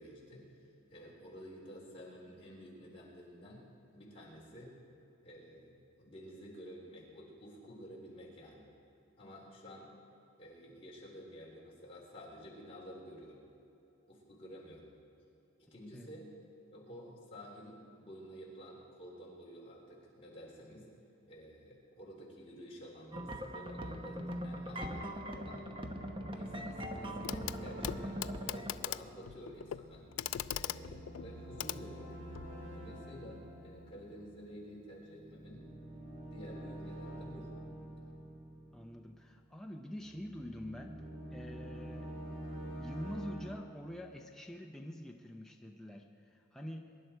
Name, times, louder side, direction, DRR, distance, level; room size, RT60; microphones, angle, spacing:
voice 1, 0.0-3.6 3.9-4.8 5.2-8.7 9.2-9.9 10.4-13.4 14.1-14.9 15.6-16.3 16.7-20.9 21.3-25.7 26.1-30.1 30.5-32.2 32.8-35.6 36.1-37.5, equal, 30° left, -5 dB, 3.8 m, -51 dB
sound 1, 23.1-28.8, equal, 25° right, 1.0 m, -41 dB
sound 2, 25.1-39.4 39.9-43.5, right 1 dB, 70° right, 3.2 m, -48 dB
Clock, 27.2-27.6 27.8-32.5 33.8-33.9, left 11 dB, 80° left, 0.4 m, -41 dB
voice 2, 38.7-41.0 41.3-42.2 42.8-46.9, left 1 dB, ahead, 1 dB, 0.7 m, -46 dB
23.0 x 11.0 x 4.5 m, 2.9 s
head